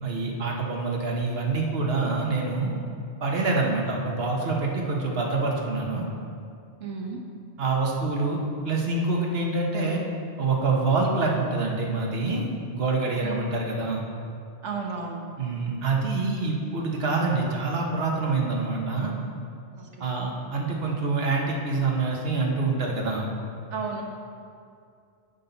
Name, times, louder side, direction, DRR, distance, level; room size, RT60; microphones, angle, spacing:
voice 1, 0.0-2.7 3.2-6.0 7.6-8.4 8.6-10.0 10.4-12.4 12.7-14.0 15.4-19.1 20.0-23.3, right 3 dB, 60° right, -1 dB, 1.5 m, -26 dB
voice 2, 6.8-7.2 13.2-13.4 14.6-15.2 19.8-20.1 23.7-24.0, right 5 dB, 85° right, 0 dB, 1.5 m, -33 dB
9.9 x 8.2 x 4.0 m, 2.4 s
omnidirectional pair, 1.2 m